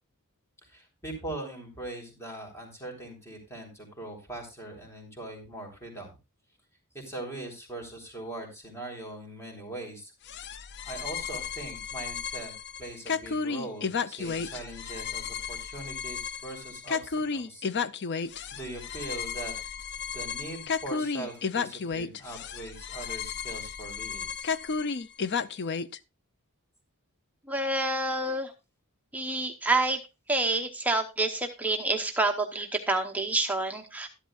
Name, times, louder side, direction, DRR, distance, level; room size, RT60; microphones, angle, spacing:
voice 1, 0.7-6.1 6.9-10.1 10.9-12.5 12.8-17.7 18.5-19.5 20.1-24.5, right 2 dB, 10° left, 1 dB, 3.6 m, -41 dB
sound 1, 10.3-26.0, left 5 dB, 50° left, 0.5 m, -33 dB
voice 2, 27.5-28.5 29.1-30.0 30.3-34.1, right 2 dB, 5° right, 2 dB, 0.8 m, -28 dB
13.5 x 11.5 x 2.4 m, 0.27 s
head